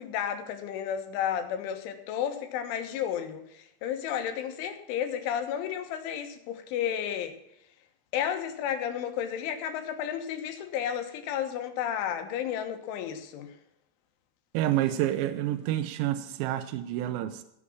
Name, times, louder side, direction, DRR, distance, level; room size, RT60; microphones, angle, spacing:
voice 1, 0.0-7.4 8.1-13.5, left 9 dB, 80° left, 3.7 m, -32 dB
voice 2, 14.5-17.4, right 13 dB, 80° right, 2.9 m, -28 dB
15.0 x 6.2 x 7.1 m
omnidirectional pair, 5.5 m